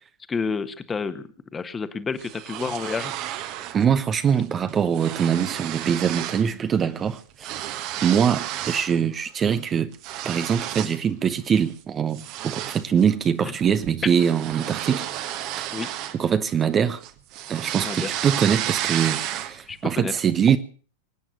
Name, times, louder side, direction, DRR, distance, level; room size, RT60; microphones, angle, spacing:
voice 1, 0.3-3.1 13.4-13.5 15.7-15.9 17.8-18.1 19.7-20.1, left 5 dB, 15° left, 1.4 m, -30 dB
sound 1, 2.2-3.8 4.2-4.4 4.7-6.5 6.8-9.0 9.4-11.0 11.5-11.7 12.1-16.7 17.0-19.7, right 12 dB, 40° right, 1.4 m, -32 dB
voice 2, 3.7-7.6 8.0-9.9 10.2-15.1 15.6-15.8 16.1-17.0 17.5-20.6, right 7 dB, 25° right, 0.8 m, -23 dB
24.5 x 9.1 x 6.6 m
figure-of-eight pair, 90°, 0 cm